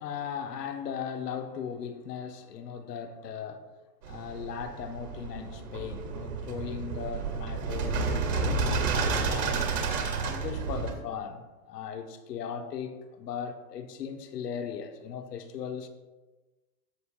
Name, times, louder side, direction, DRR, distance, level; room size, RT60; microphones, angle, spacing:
voice 1, 0.0-3.6 4.0-9.7 10.2-15.9, left 7 dB, 85° left, 1.1 m, -38 dB
sound 1, 4.0-10.9, right 4 dB, 85° right, 2.1 m, -31 dB
14.5 x 6.2 x 2.3 m
hypercardioid pair, 130°, 47 cm